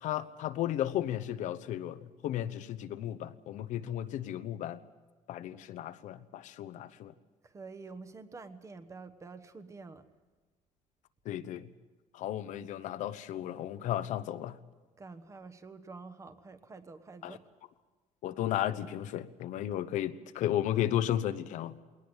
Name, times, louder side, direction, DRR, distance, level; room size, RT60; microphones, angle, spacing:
voice 1, 0.0-4.8 5.3-7.1 11.2-11.7 12.1-14.6 17.2-17.4 18.2-21.7, left 12 dB, 65° left, 13 dB, 1.0 m, -34 dB
voice 2, 7.4-10.0 15.0-17.4, right 4 dB, 20° right, 11 dB, 1.3 m, -48 dB
21.0 x 18.5 x 8.1 m, 1.3 s
cardioid pair, 145°, 13 cm